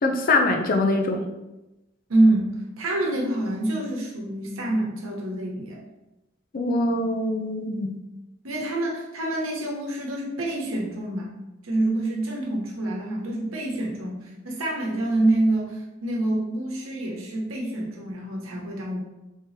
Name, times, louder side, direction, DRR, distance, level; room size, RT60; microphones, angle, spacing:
voice 1, 0.0-1.3 6.5-7.9, left 2 dB, 45° left, 4 dB, 0.5 m, -23 dB
voice 2, 2.1-5.8 7.8-7.9 8.4-11.3 11.6-14.2 14.4-19.0, right 1 dB, 85° right, -2 dB, 1.0 m, -26 dB
3.6 x 2.8 x 3.1 m, 0.98 s
head